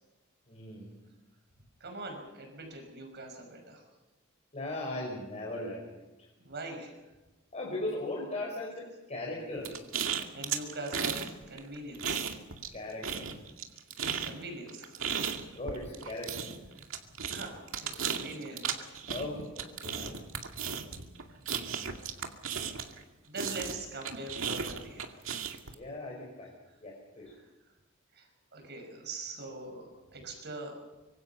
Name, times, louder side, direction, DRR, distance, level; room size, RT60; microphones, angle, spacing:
voice 1, 0.5-1.0 4.5-6.3 7.5-9.8 12.7-13.3 15.5-16.5 19.1-20.2 25.7-26.5 26.8-27.3, left 1 dB, 30° left, -1 dB, 4.7 m, -38 dB
voice 2, 1.8-3.8 6.4-7.0 10.0-12.3 14.2-15.5 16.7-16.9 17.3-18.9 23.2-25.2 27.2-27.5 28.1-30.8, right 2 dB, 55° right, 3 dB, 5.8 m, -43 dB
sound 1, 9.6-11.3 11.6-12.8 13.0-23.0 23.4-25.7, right 7 dB, 70° right, 2.3 m, -35 dB
25.0 x 24.5 x 5.7 m, 1.1 s
head